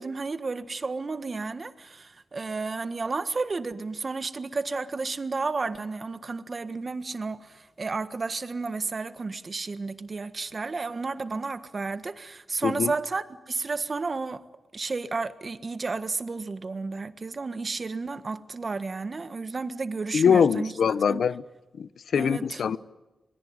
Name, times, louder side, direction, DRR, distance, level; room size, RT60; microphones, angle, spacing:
voice 1, 0.0-14.4 14.7-20.7 21.1-21.2 22.1-22.6, right 3 dB, 40° right, 1.6 m, -32 dB
voice 2, 20.1-21.4 21.8-22.8, left 7 dB, 80° left, 0.9 m, -23 dB
26.0 x 21.5 x 9.7 m
wide cardioid pair, 100°, 0 cm